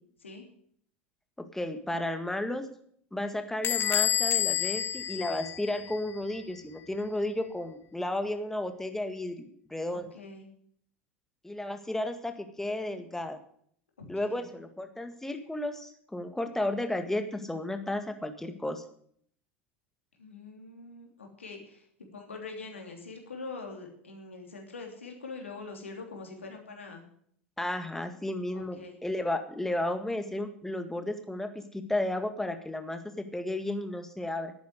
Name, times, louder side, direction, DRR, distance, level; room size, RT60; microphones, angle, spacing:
voice 1, 1.4-2.7 3.1-10.1 11.4-13.4 14.1-18.8 27.6-34.5, left 1 dB, 5° left, 7 dB, 1.8 m, -33 dB
Bell / Door, 3.6-6.1, left 10 dB, 35° left, 0.7 m, -29 dB
voice 2, 9.9-10.5 14.0-14.5 20.2-21.9 22.1-27.0 28.5-29.0, left 3 dB, 90° left, 2 dB, 3.0 m, -44 dB
11.5 x 9.3 x 8.1 m, 0.63 s
hypercardioid pair, 80°, 6 cm